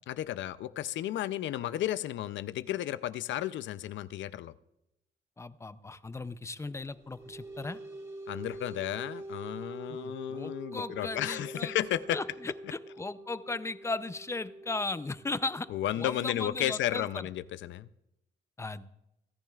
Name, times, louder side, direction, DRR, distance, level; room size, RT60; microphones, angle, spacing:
voice 1, 0.1-4.5 8.3-12.2 15.7-17.9, left 12 dB, 80° left, 15 dB, 0.5 m, -33 dB
voice 2, 5.4-7.8 9.9-11.7 12.1-15.7 16.0-17.3 18.6-18.9, left 3 dB, 15° left, 14 dB, 0.5 m, -37 dB
sound 1, 6.8-17.7, right 1 dB, 15° right, 3.3 m, -46 dB
28.5 x 10.5 x 2.4 m, 0.86 s
cardioid pair, 130°, 19 cm